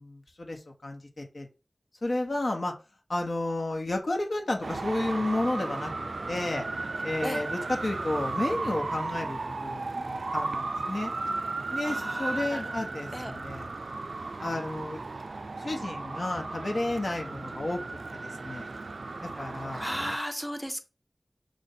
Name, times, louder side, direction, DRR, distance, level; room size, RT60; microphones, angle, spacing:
voice 1, 0.0-1.5 2.0-2.7 3.1-6.7 7.0-11.1 11.7-13.7 14.4-15.0 15.6-17.8 18.2-18.7 19.4-19.8, left 2 dB, 75° left, 2 dB, 1.2 m, -32 dB
Traffic noise roadway noise, 4.6-20.2, right 3 dB, 80° right, 0.3 m, -35 dB
voice 2, 11.8-12.8 13.1-13.4 19.8-20.8, equal, ahead, 7 dB, 0.7 m, -35 dB
5.0 x 2.6 x 4.0 m, 0.31 s
wide cardioid pair, 40°, 0 cm